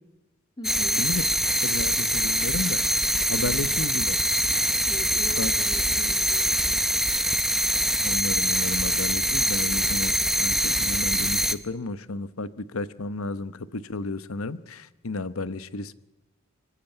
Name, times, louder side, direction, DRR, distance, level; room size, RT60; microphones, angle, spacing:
voice 1, 0.6-1.0 4.9-7.3, left 1 dB, 20° left, 7 dB, 2.0 m, -42 dB
sound 1, 0.6-11.5, right 1 dB, ahead, 0.8 m, -24 dB
voice 2, 1.6-4.2 5.4-5.5 8.0-15.9, left 3 dB, 85° left, 14 dB, 1.0 m, -33 dB
24.5 x 15.0 x 9.1 m, 1.1 s
head